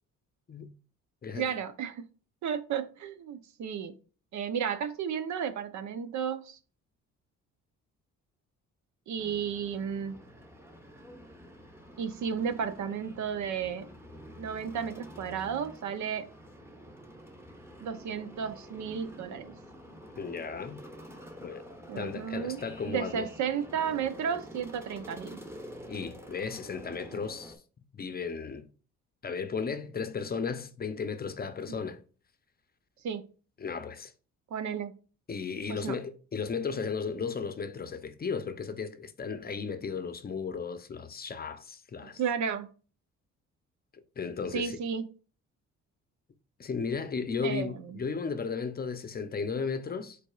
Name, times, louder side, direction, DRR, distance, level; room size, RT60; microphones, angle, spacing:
voice 1, 1.3-2.0 2.4-3.9 4.3-6.6 9.1-10.2 12.0-13.9 14.4-16.3 17.8-19.5 21.9-22.6 22.8-25.4 31.7-31.8 33.0-33.2 34.5-34.9 35.7-36.0 42.0-42.7 44.5-45.1 47.4-48.0, right 7 dB, 70° right, 0.8 m, -33 dB
sound 1, 9.2-27.6, equal, 10° right, 1.0 m, -48 dB
voice 2, 20.2-20.8 21.4-21.6 22.0-23.3 25.9-27.6 27.9-28.7 29.2-32.0 33.6-34.1 35.3-42.2 44.2-44.8 46.6-50.2, left 5 dB, 30° left, 0.6 m, -35 dB
5.2 x 4.2 x 2.4 m
cardioid pair, 90°, 30 cm